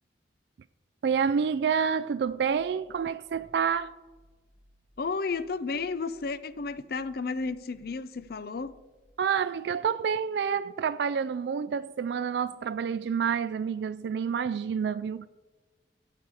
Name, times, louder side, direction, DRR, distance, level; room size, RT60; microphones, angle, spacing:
voice 1, 1.0-3.9 9.2-15.3, right 7 dB, 65° right, 0.3 m, -28 dB
sound 1, 2.2-9.0, equal, 35° left, 4.7 m, -63 dB
voice 2, 5.0-8.7, left 4 dB, 55° left, 0.5 m, -32 dB
14.0 x 8.4 x 4.7 m
head